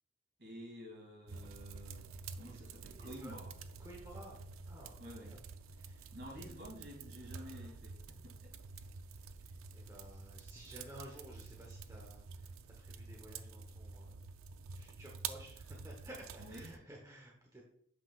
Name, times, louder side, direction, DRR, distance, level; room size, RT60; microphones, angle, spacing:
voice 1, 0.4-2.0 2.4-3.5 5.0-5.4 6.1-8.0 8.2-8.5 16.4-16.7, equal, 55° right, -1 dB, 2.4 m, -50 dB
sound 1, 1.3-16.8, right 5 dB, 85° right, 0.4 m, -49 dB
voice 2, 3.0-3.3 3.8-4.4 4.7-5.4 5.7-6.5 9.4-14.2 14.7-17.6, right 1 dB, 15° right, -2 dB, 1.0 m, -54 dB
7.7 x 5.9 x 2.4 m, 0.66 s
head